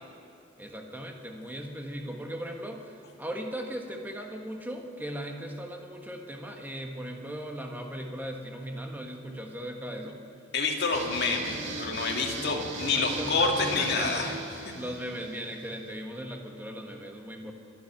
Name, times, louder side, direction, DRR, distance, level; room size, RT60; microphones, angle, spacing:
voice 1, 0.6-10.2 12.9-14.3 14.8-17.5, equal, 10° right, 2 dB, 1.4 m, -38 dB
voice 2, 10.5-14.3, left 4 dB, 60° left, 0 dB, 2.1 m, -28 dB
sound 1, 10.9-15.9, right 3 dB, 70° right, 2.1 m, -38 dB
25.5 x 9.6 x 5.8 m, 2.5 s
head